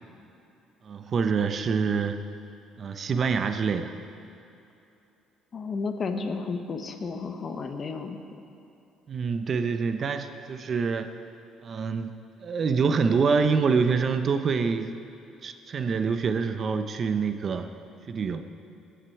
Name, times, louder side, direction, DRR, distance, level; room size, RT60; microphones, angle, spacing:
voice 1, 0.8-2.2 2.8-3.9 9.1-11.1 11.6-12.1 12.4-15.0 15.4-17.7 18.1-18.4, right 5 dB, 50° right, 8 dB, 0.8 m, -26 dB
voice 2, 5.5-8.2, left 4 dB, 45° left, 6 dB, 1.2 m, -32 dB
18.5 x 8.2 x 4.8 m, 2.8 s
supercardioid pair, 65°, 0 cm